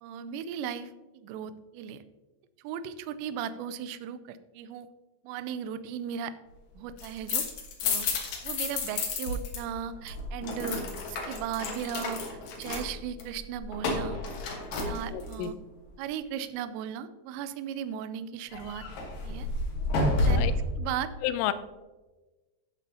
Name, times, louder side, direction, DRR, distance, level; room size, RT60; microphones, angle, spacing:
voice 1, 0.0-2.0 2.6-4.9 5.2-6.3 6.8-7.5 7.8-10.8 11.1-12.2 12.6-14.2 14.9-15.6 16.0-18.9 19.2-19.5 20.2-20.5 20.8-21.1, right 8 dB, 85° right, 12 dB, 2.7 m, -36 dB
sound 1, 6.8-9.6 9.9-15.4 18.5-20.7, left 2 dB, 65° left, 2.5 m, -31 dB
voice 2, 15.1-15.5 20.0-20.5 21.2-21.5, left 12 dB, 80° left, 12 dB, 2.6 m, -31 dB
12.0 x 8.3 x 2.8 m, 1.2 s
omnidirectional pair, 5.3 m